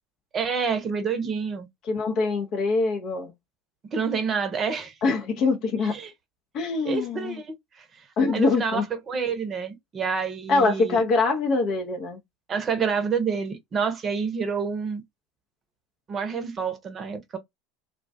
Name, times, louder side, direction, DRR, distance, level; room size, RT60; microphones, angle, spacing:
voice 1, 0.3-1.7 3.9-4.9 5.8-6.1 6.8-7.8 8.3-11.0 12.5-15.0 16.1-17.4, right 6 dB, 35° right, 0.7 m, -28 dB
voice 2, 1.8-3.3 5.0-5.9 6.5-7.4 8.2-8.8 10.5-12.2, left 3 dB, 50° left, 0.5 m, -24 dB
2.3 x 2.1 x 2.5 m
figure-of-eight pair, 75°, 0 cm